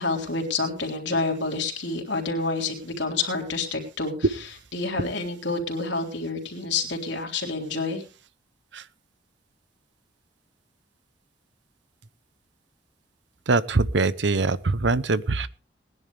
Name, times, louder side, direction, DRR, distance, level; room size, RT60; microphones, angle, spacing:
voice 1, 0.0-4.1 4.7-8.0, left 3 dB, 80° left, 2 dB, 3.5 m, -28 dB
voice 2, 13.5-15.5, right 3 dB, 80° right, 16 dB, 0.8 m, -23 dB
20.0 x 11.0 x 3.4 m, 0.33 s
head